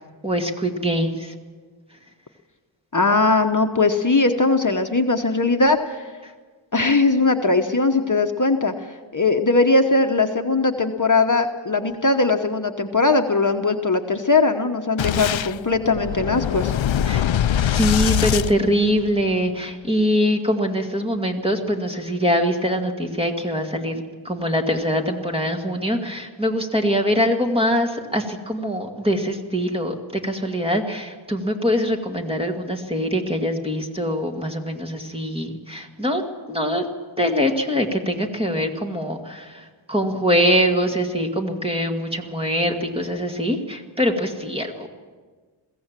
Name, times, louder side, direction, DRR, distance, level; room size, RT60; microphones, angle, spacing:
voice 1, 0.2-1.3 17.1-17.3 17.6-36.2 36.5-36.9 37.2-44.9, equal, 10° right, 3 dB, 2.1 m, -23 dB
voice 2, 2.9-6.0 6.7-16.7, left 3 dB, 40° left, 5 dB, 1.0 m, -20 dB
Boom, 15.0-19.4, left 10 dB, 70° left, 0.5 m, -23 dB
22.0 x 16.0 x 7.5 m, 1.5 s
wide cardioid pair, 50°, 47 cm